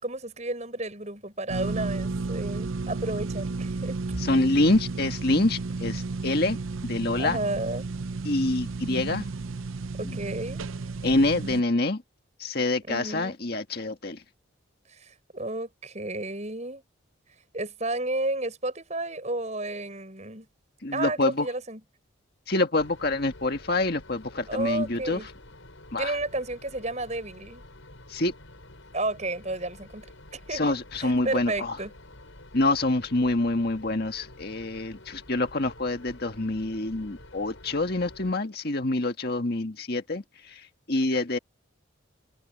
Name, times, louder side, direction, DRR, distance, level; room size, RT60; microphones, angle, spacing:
voice 1, 0.0-4.0 7.2-7.9 10.0-10.6 12.9-13.4 14.9-16.8 17.5-20.5 20.9-21.8 24.5-25.3 26.0-27.6 28.9-30.0 30.3-31.9, right 2 dB, 35° right, 7.0 m, -32 dB
sound 1, 1.5-11.6, right 3 dB, 85° right, 0.7 m, -33 dB
voice 2, 4.2-6.6 6.8-7.4 8.2-9.2 10.0-10.1 11.0-12.0 12.4-14.2 20.8-21.5 22.5-25.2 25.9-26.1 28.1-28.3 30.5-31.8 32.5-41.4, left 2 dB, 50° left, 1.8 m, -26 dB
sound 2, 22.8-38.3, left 1 dB, 75° left, 6.1 m, -49 dB
head